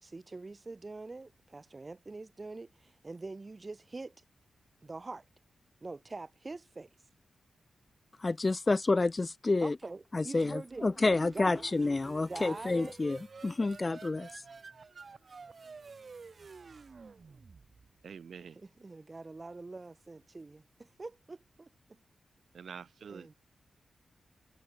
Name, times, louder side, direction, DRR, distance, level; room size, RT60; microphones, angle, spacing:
voice 1, 0.0-4.2 4.8-5.2 5.8-6.9 9.6-10.9 11.3-11.6 12.3-12.9 18.6-22.0 23.1-23.3, right 3 dB, 30° right, 2.2 m, -44 dB
voice 2, 8.2-9.8 10.1-14.3, left 3 dB, 30° left, 0.6 m, -29 dB
sound 1, 10.4-18.0, right 4 dB, 45° right, 2.3 m, -50 dB
voice 3, 18.0-18.6 22.5-23.3, right 6 dB, 70° right, 1.2 m, -46 dB
wide cardioid pair, 105°, 0 cm